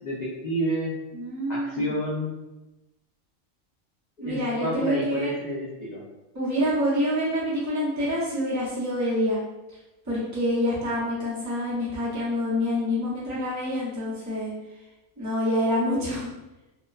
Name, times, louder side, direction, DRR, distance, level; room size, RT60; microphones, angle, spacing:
voice 1, 0.0-0.9 1.5-2.3 4.2-6.0, equal, 90° left, -6 dB, 0.3 m, -29 dB
voice 2, 1.1-1.9 4.2-5.3 6.3-9.4 10.1-14.5 15.2-16.3, equal, 20° right, -8 dB, 0.5 m, -26 dB
2.8 x 2.0 x 2.3 m, 1.0 s
omnidirectional pair, 1.4 m